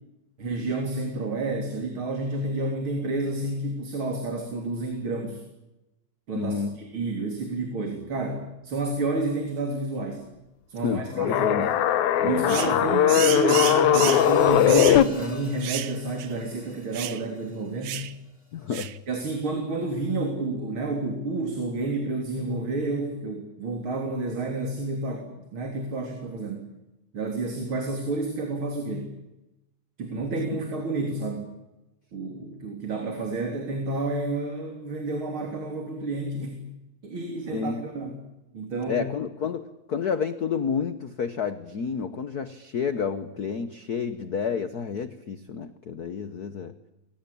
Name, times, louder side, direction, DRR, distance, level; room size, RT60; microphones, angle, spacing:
voice 1, 0.4-5.4 6.3-10.3 10.7-11.7 12.2-18.1 19.1-26.7 27.1-29.1 30.0-31.5 32.1-36.6 37.0-38.2 38.5-39.1, right 2 dB, 45° right, 3 dB, 4.1 m, -30 dB
voice 2, 6.3-6.8 10.8-11.8 12.2-12.8 18.5-19.0 37.5-37.8 38.9-46.7, left 6 dB, 65° left, 11 dB, 0.9 m, -30 dB
sound 1, 11.2-15.0, left 11 dB, 80° left, 2.5 m, -20 dB
sound 2, 12.5-12.8 13.1-14.3 14.7-15.0 15.6-15.9 16.2-16.3 16.9-17.2 17.8-18.1 18.7-19.0, right 12 dB, 75° right, 2.4 m, -31 dB
Hi-hat, 14.0-18.3, left 1 dB, 10° left, 4.8 m, -46 dB
29.0 x 24.0 x 8.6 m, 0.97 s
omnidirectional pair, 3.3 m